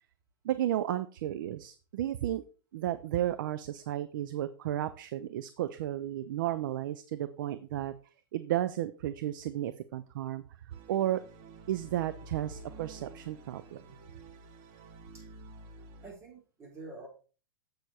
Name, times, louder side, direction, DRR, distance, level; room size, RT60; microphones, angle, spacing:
voice 1, 0.4-2.4 2.7-7.9 8.3-10.4 10.9-11.2 11.7-13.8, right 12 dB, 65° right, 12 dB, 0.6 m, -33 dB
sound 1, 10.7-16.1, right 2 dB, 45° right, 1.5 m, -50 dB
voice 2, 16.0-17.1, right 2 dB, 20° right, -1 dB, 4.1 m, -47 dB
7.9 x 6.8 x 4.3 m, 0.37 s
hypercardioid pair, 110°, 12 cm